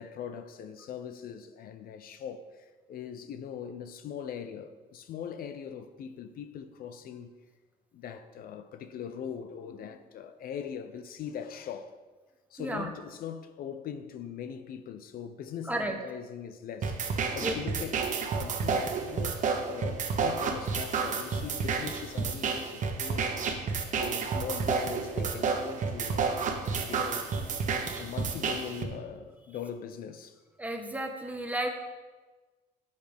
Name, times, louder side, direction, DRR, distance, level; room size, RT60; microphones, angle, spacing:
voice 1, 0.0-7.3 7.9-12.0 12.5-19.4 19.7-23.3 23.6-26.3 26.9-27.4 28.0-30.4, left 8 dB, 60° left, 0.7 m, -41 dB
sound 1, 16.8-28.8, right 5 dB, 50° right, 1.3 m, -30 dB
voice 2, 30.6-31.7, right 1 dB, 10° right, 1.2 m, -32 dB
11.5 x 8.3 x 3.5 m
cardioid pair, 110°, 17 cm